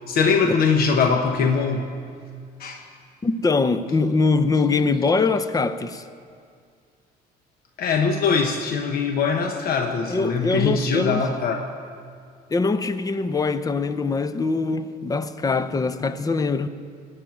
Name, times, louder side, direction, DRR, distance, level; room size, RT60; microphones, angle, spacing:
voice 1, 0.1-1.9 2.6-2.8 7.8-11.7, left 5 dB, 60° left, 1.0 m, -22 dB
voice 2, 3.2-6.0 10.1-11.2 12.5-16.7, left 3 dB, 20° left, 0.6 m, -22 dB
18.0 x 6.4 x 9.1 m
cardioid pair, 110°, 17 cm